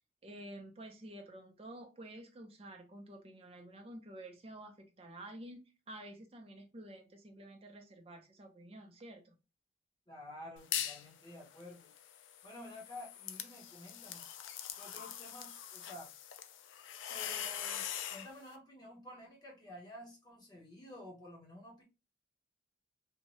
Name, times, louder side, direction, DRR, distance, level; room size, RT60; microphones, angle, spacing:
voice 1, 0.2-9.4, right 1 dB, 30° right, 0.5 m, -50 dB
voice 2, 10.1-11.9 12.4-14.3 14.8-16.1 17.0-21.8, left 1 dB, 20° left, 0.9 m, -51 dB
sound 1, 10.6-11.1 11.5-18.3, left 10 dB, 80° left, 0.4 m, -42 dB
2.7 x 2.1 x 2.9 m
head